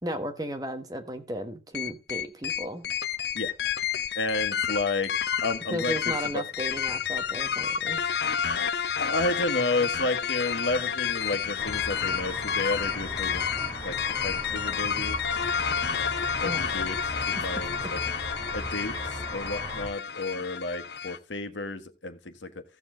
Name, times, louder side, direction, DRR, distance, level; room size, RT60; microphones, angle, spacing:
voice 1, 0.0-2.9 5.7-8.0 16.4-16.7, right 1 dB, 20° right, 1.5 m, -35 dB
sound 1, 1.7-21.2, left 7 dB, 60° left, 0.7 m, -30 dB
voice 2, 4.1-5.1 5.4-6.4 9.0-15.2 16.4-18.0 18.5-22.6, left 2 dB, 85° left, 1.5 m, -32 dB
sound 2, 5.6-14.3, right 1 dB, 35° right, 6.3 m, -56 dB
sound 3, 11.6-19.9, left 1 dB, 20° left, 3.2 m, -37 dB
15.0 x 7.1 x 3.8 m
head